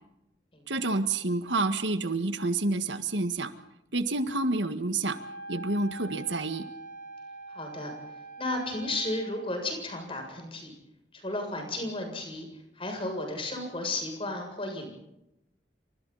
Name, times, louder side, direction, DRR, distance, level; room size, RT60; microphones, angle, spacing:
voice 1, 0.7-3.5 3.9-5.2 5.5-6.6, right 2 dB, 90° right, 9 dB, 1.8 m, -28 dB
Wind instrument woodwind instrument, 5.1-9.5, right 2 dB, 50° left, 4.1 m, -44 dB
voice 2, 7.5-7.9 8.4-10.7 11.1-12.5 12.8-14.9, left 2 dB, 30° left, 3 dB, 7.5 m, -33 dB
29.0 x 25.5 x 4.2 m, 0.86 s
head